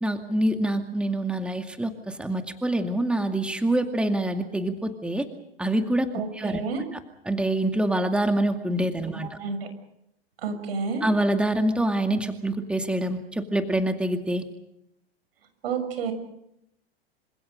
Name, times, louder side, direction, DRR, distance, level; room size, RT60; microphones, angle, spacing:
voice 1, 0.0-5.3 5.6-6.1 6.3-6.6 7.2-9.4 11.0-14.5, right 1 dB, 5° right, 5 dB, 2.2 m, -25 dB
voice 2, 6.1-6.8 9.1-9.7 10.4-11.0 15.6-16.1, right 5 dB, 70° right, 8 dB, 6.7 m, -30 dB
27.5 x 26.0 x 5.2 m, 0.79 s
hypercardioid pair, 100°, 31 cm